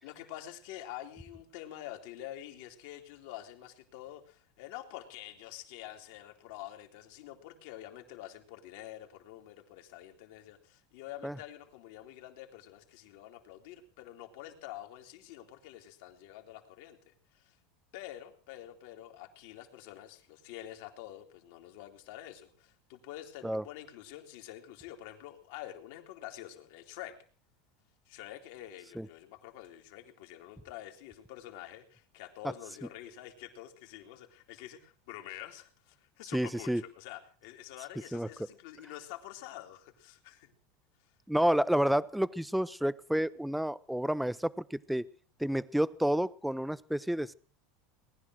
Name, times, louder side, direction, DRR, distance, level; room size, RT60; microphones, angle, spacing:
voice 1, 0.0-17.6 17.9-27.2 28.1-40.5, left 13 dB, 70° left, 4 dB, 2.9 m, -47 dB
voice 2, 36.3-36.8 38.1-38.3 41.3-45.0 45.4-47.3, equal, ahead, 18 dB, 0.7 m, -30 dB
19.5 x 11.0 x 6.2 m, 0.42 s
supercardioid pair, 120°, 0 cm